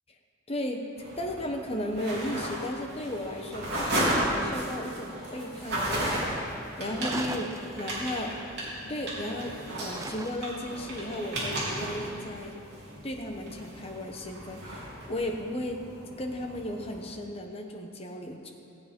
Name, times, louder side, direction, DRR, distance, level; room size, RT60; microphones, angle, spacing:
voice 1, 0.5-0.8 1.2-6.3 6.8-8.4 8.8-12.6 13.0-15.8 16.2-18.5, left 1 dB, 30° left, 2 dB, 1.0 m, -35 dB
sound 1, 1.0-17.0, right 1 dB, 50° right, 3.7 m, -35 dB
sound 2, 7.0-8.2 9.9-10.7, right 3 dB, 15° right, 0.3 m, -39 dB
16.0 x 8.6 x 5.3 m, 2.6 s
head